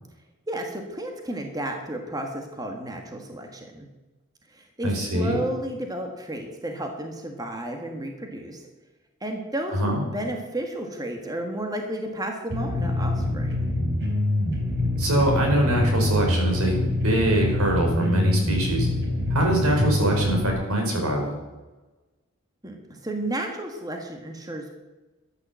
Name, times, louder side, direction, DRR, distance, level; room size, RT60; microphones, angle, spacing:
voice 1, 0.5-3.9 4.5-8.6 9.2-9.8 10.1-13.6 22.6-24.8, right 1 dB, 15° right, 3 dB, 1.5 m, -32 dB
voice 2, 4.8-5.4 9.7-10.0 15.0-18.9 19.3-21.3, right 1 dB, 85° right, 1 dB, 4.8 m, -23 dB
sound 1, 12.5-20.5, left 1 dB, 55° right, 3.2 m, -25 dB
13.0 x 9.9 x 7.5 m, 1.1 s
head